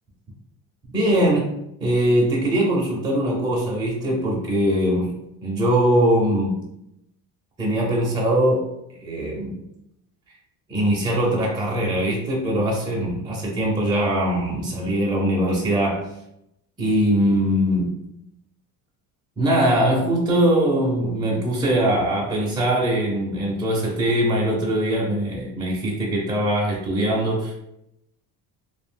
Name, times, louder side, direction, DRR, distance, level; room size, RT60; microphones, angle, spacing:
voice 1, 0.9-1.5 1.8-5.1 5.4-6.6 7.6-8.7 9.0-9.6 10.7-16.1 16.8-17.9 19.4-27.5, right 1 dB, 15° right, -4 dB, 0.4 m, -21 dB
2.3 x 2.0 x 3.3 m, 0.81 s
cardioid pair, 140°, 38 cm